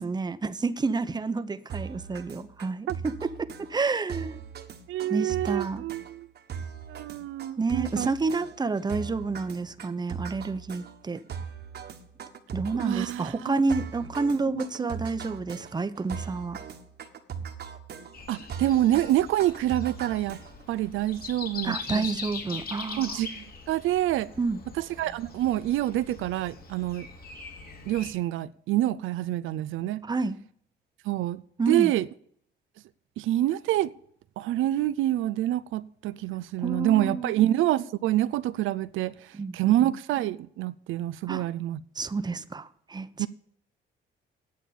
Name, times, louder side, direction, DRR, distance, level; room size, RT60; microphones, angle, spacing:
voice 1, 0.0-4.4 5.1-5.8 7.6-11.2 12.5-16.6 21.6-23.2 24.4-24.6 30.0-30.4 31.6-31.9 36.6-37.3 39.3-39.9 41.3-41.5 42.0-43.3, right 4 dB, 20° right, 0.8 m, -29 dB
sound 1, 1.7-20.8, right 7 dB, 55° right, 1.5 m, -40 dB
voice 2, 4.9-6.3 6.9-8.1 12.8-13.6 14.8-14.9 18.3-20.4 20.7-22.1 23.0-24.3 24.8-27.1 27.9-30.0 31.1-31.4 31.7-32.1 33.2-33.9 34.4-39.2 39.5-41.8 43.2-43.3, right 14 dB, 85° right, 0.5 m, -27 dB
Breathing, 18.1-28.1, left 4 dB, 50° left, 2.5 m, -41 dB
9.5 x 7.3 x 8.5 m
cardioid pair, 90°, 20 cm